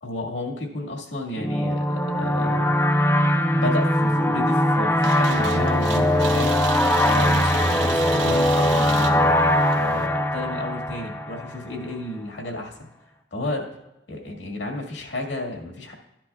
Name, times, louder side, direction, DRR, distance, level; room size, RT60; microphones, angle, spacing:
voice 1, 0.0-2.8 3.5-6.8 7.0-9.4 9.8-12.7 13.3-13.7 14.1-15.9, left 2 dB, 80° left, 1 dB, 2.0 m, -31 dB
sound 1, 1.4-11.7, left 1 dB, 10° left, 0.5 m, -21 dB
sound 2, 5.0-10.1, right 6 dB, 90° right, 0.8 m, -34 dB
13.0 x 10.0 x 2.4 m, 0.88 s
head